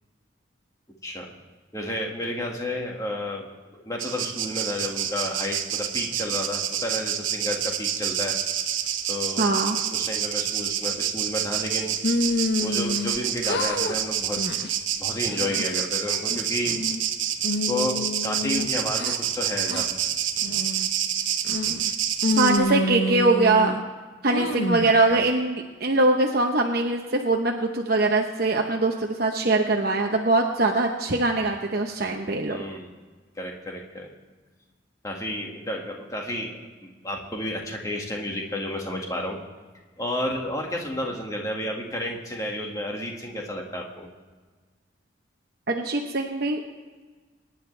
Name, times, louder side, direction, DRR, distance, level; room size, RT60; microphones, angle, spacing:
voice 1, 1.7-3.5 3.8-8.4 9.1-12.0 12.6-14.4 15.0-16.8 17.6-20.0 24.4-24.5 32.5-32.9 33.4-34.1 35.0-39.4 40.0-44.1, left 1 dB, 15° left, 0 dB, 1.9 m, -31 dB
sound 1, 4.0-22.6, right 9 dB, 85° right, 1.1 m, -28 dB
voice 2, 9.4-9.8 22.4-23.7 24.2-32.6 45.7-46.6, right 2 dB, 50° right, 2 dB, 0.9 m, -22 dB
sound 2, 12.0-13.2 13.4-14.0 14.4-14.7 15.2-15.8 16.3-17.0 17.4-19.2 19.7-19.9 20.4-20.9 21.4-21.9 22.2-23.8 24.3-24.9, left 2 dB, 60° left, 0.9 m, -28 dB
24.0 x 10.5 x 3.4 m, 1.4 s
head